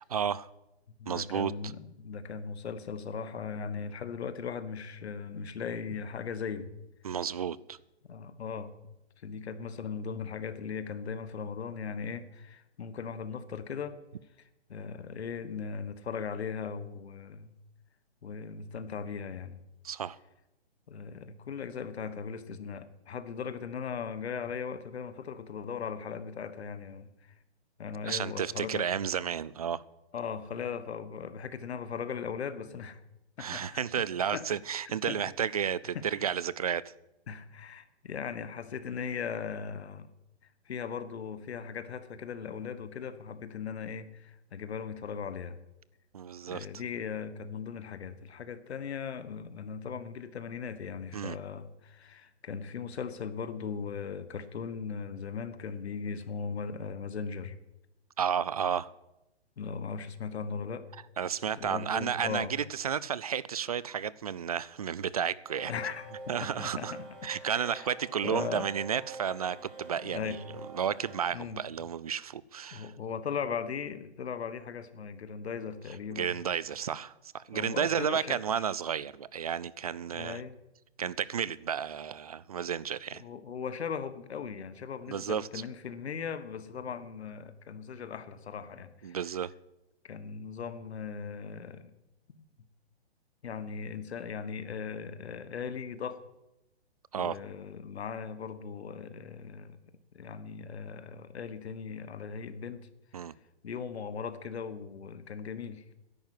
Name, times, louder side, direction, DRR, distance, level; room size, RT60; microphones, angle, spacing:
voice 1, 0.1-0.5 1.1-1.5 7.0-7.8 19.8-20.2 28.1-29.8 33.4-36.8 46.1-46.7 51.1-51.4 58.2-58.9 61.2-65.7 66.3-67.0 67.2-70.4 70.7-72.9 76.1-80.4 81.0-83.2 85.1-85.6 89.0-89.5 97.1-97.4 103.1-103.3, right 8 dB, 35° right, 0.4 m, -32 dB
voice 2, 1.0-6.7 8.1-8.7 9.2-14.0 14.7-17.5 18.2-19.6 20.9-27.1 27.8-28.9 30.1-33.0 33.4-33.8 34.3-34.4 35.1-35.6 35.9-36.2 37.3-40.1 40.7-45.6 46.5-57.6 59.6-60.9 61.6-62.5 65.7-67.9 68.2-68.7 70.0-70.4 71.3-71.6 72.7-76.3 77.5-78.6 80.1-80.5 83.2-89.2 90.0-91.9 93.4-96.2 97.1-99.8 100.1-102.9 103.6-105.8, left 6 dB, 70° left, 1.4 m, -38 dB
sound 1, 65.5-71.3, right 3 dB, 50° right, 2.7 m, -46 dB
10.5 x 8.9 x 9.2 m
hypercardioid pair, 150°, 33 cm